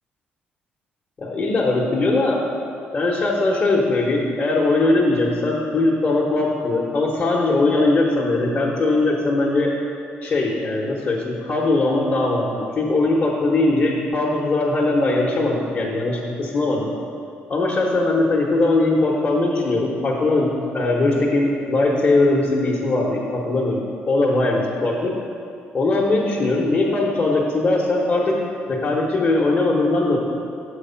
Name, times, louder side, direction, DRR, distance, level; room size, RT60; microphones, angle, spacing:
voice 1, 1.2-2.4 2.9-9.7 10.2-12.5 12.8-16.9 17.5-23.8 24.1-25.1 25.7-28.4 28.7-30.2, left 2 dB, 40° left, -5 dB, 1.0 m, -20 dB
6.8 x 4.8 x 5.6 m, 2.5 s
cardioid pair, 105°, 4 cm